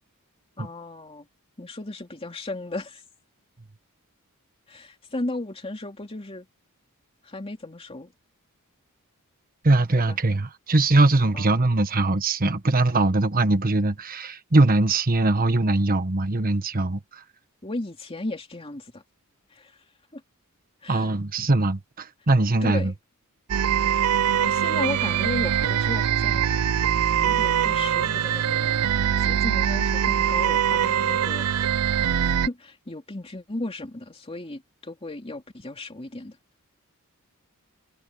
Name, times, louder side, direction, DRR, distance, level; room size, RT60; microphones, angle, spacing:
voice 1, 0.6-1.3 1.6-3.0 4.7-6.5 7.2-8.1 9.9-10.2 11.3-11.7 17.6-19.0 19.5-19.8 20.1-20.2 20.8-21.1 22.6-22.9 24.4-26.5 27.2-28.8 29.2-31.5 32.0-36.4, left 2 dB, 25° left, 2.7 m, -35 dB
voice 2, 9.6-17.2 20.9-22.9, right 2 dB, 40° right, 1.2 m, -21 dB
sound 1, 23.5-32.5, right 9 dB, 80° right, 0.5 m, -23 dB
head